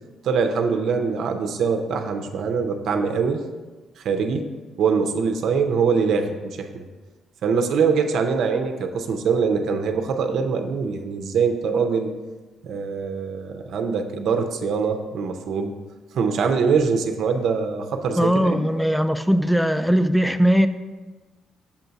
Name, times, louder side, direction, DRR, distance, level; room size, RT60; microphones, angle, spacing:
voice 1, 0.2-3.4 4.0-4.5 4.8-6.8 7.4-12.1 12.6-15.7 16.1-18.7, right 5 dB, 70° right, 5 dB, 0.5 m, -23 dB
voice 2, 18.2-20.7, equal, ahead, 10 dB, 0.3 m, -19 dB
7.0 x 2.7 x 5.7 m, 1.2 s
cardioid pair, 90°, 0 cm